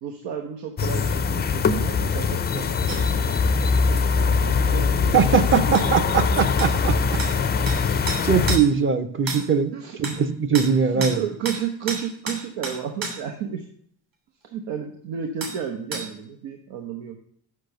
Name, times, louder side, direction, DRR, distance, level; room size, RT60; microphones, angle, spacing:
voice 1, 0.0-5.9 9.7-10.0 10.9-13.7 14.4-17.2, right 8 dB, 90° right, 3 dB, 1.1 m, -32 dB
sound 1, 0.8-8.6, left 5 dB, 25° left, 0.4 m, -22 dB
sound 2, 2.9-3.0 5.7-5.9 6.6-6.7 7.2-7.3 7.7-7.8 8.1-8.7 9.3-9.4 10.0-10.2 10.5-10.7 11.0-11.2 11.5-11.6 11.9-13.2 15.4-15.6 15.9-16.1, right 3 dB, 50° right, 3.0 m, -30 dB
voice 2, 5.1-7.2 8.2-9.7 10.0-11.2, right 6 dB, 30° right, 11 dB, 0.6 m, -21 dB
6.6 x 6.1 x 6.5 m, 0.65 s
cardioid pair, 130°, 43 cm